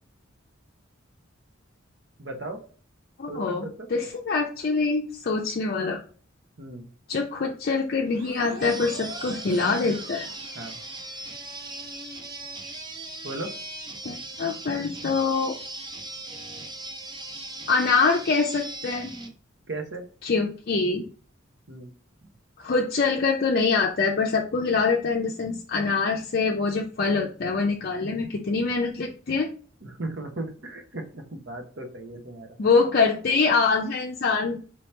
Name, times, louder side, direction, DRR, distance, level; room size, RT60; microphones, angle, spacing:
voice 1, 2.2-2.6 3.3-3.9 6.6-6.9 10.5-10.8 13.2-13.5 19.7-20.0 21.7-21.9 29.8-32.6, right 2 dB, 60° right, 4 dB, 0.9 m, -36 dB
voice 2, 3.2-3.6 3.9-6.0 7.1-10.3 14.0-15.6 17.7-19.1 20.2-21.0 22.6-29.5 32.6-34.6, left 4 dB, 50° left, 0 dB, 0.5 m, -24 dB
sound 1, 8.0-11.5, right 1 dB, 85° right, 1.5 m, -42 dB
sound 2, 8.6-19.3, right 2 dB, 20° right, 0.6 m, -39 dB
4.5 x 2.9 x 3.3 m, 0.41 s
head